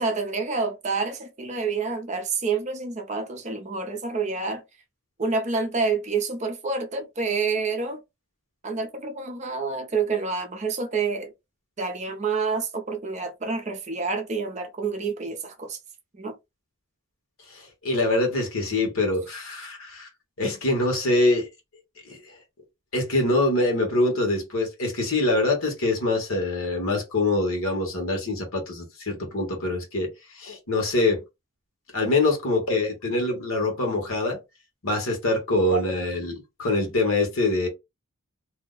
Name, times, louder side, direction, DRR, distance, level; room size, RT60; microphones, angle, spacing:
voice 1, 0.0-4.6 5.2-8.0 8.6-11.3 11.8-15.8 16.2-16.3, right 4 dB, 35° right, 0.5 m, -28 dB
voice 2, 17.5-20.1 20.4-21.5 22.1-22.2 22.9-31.2 31.9-34.4 34.8-37.7, left 2 dB, 75° left, 1.2 m, -24 dB
2.7 x 2.1 x 3.7 m
head